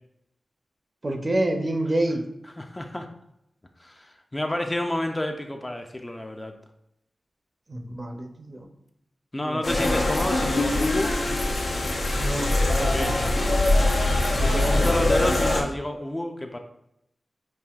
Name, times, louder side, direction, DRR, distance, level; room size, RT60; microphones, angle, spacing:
voice 1, 1.0-2.2 7.7-8.7 9.4-10.1 12.2-13.3 14.4-15.0, right 1 dB, 40° right, 3 dB, 0.5 m, -28 dB
voice 2, 2.6-3.1 3.8-6.5 9.3-11.1 12.8-13.1 14.4-16.6, left 1 dB, 20° left, 4 dB, 0.4 m, -29 dB
sound 1, 9.6-15.6, left 2 dB, 80° left, 0.7 m, -23 dB
5.4 x 2.5 x 2.3 m, 0.80 s
wide cardioid pair, 65°, 0 cm